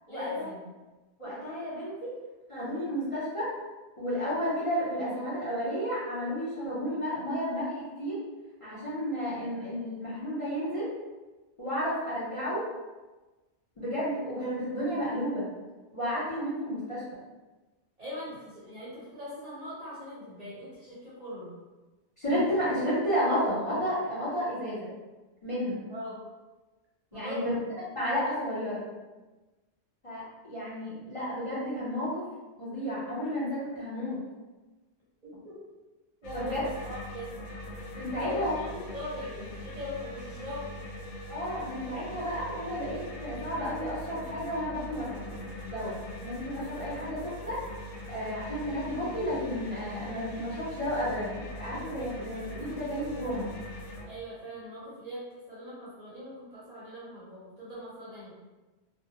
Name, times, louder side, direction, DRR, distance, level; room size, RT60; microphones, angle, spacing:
voice 1, 0.1-0.6 1.2-1.3 18.0-21.5 25.9-26.2 27.1-27.6 35.2-35.6 36.2-37.4 38.2-40.8 54.1-58.3, left 2 dB, 40° right, -9 dB, 0.7 m, -40 dB
voice 2, 1.2-2.1 2.5-3.5 4.0-8.2 8.6-10.9 11.6-12.6 13.8-15.5 15.9-17.0 22.2-24.9 25.4-25.8 27.1-27.5 27.9-28.8 30.0-32.2 32.6-34.2 36.3-36.6 37.9-38.5 41.3-47.6 48.1-53.5, equal, 35° left, -10 dB, 0.6 m, -32 dB
sound 1, 36.2-54.1, equal, 85° left, 0.9 m, -42 dB
2.5 x 2.0 x 2.7 m, 1.2 s
omnidirectional pair, 1.2 m